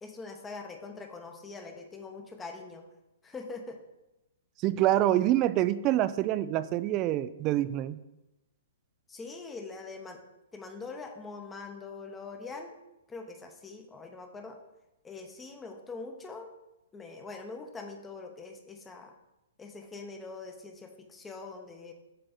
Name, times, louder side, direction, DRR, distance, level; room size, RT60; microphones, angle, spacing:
voice 1, 0.0-2.8 3.2-3.8 9.1-10.2 10.5-12.7 13.1-14.6 15.0-16.5 16.9-19.1 19.6-21.9, left 4 dB, 15° left, 4 dB, 0.8 m, -43 dB
voice 2, 4.6-8.0, right 13 dB, 30° right, 14 dB, 0.3 m, -26 dB
7.6 x 3.3 x 4.1 m, 0.95 s
hypercardioid pair, 130°, 0 cm